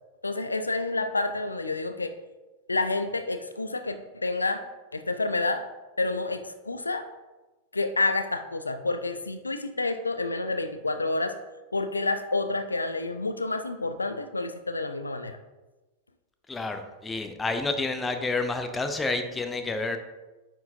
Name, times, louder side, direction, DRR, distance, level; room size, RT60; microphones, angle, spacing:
voice 1, 0.2-2.2 2.7-4.6 4.9-5.6 6.0-7.1 7.7-11.4 11.7-15.4, left 2 dB, 80° left, 9 dB, 0.4 m, -29 dB
voice 2, 16.5-20.0, left 3 dB, 15° left, 7 dB, 0.6 m, -29 dB
9.3 x 4.5 x 2.6 m, 1.1 s
figure-of-eight pair, 90°, 0 cm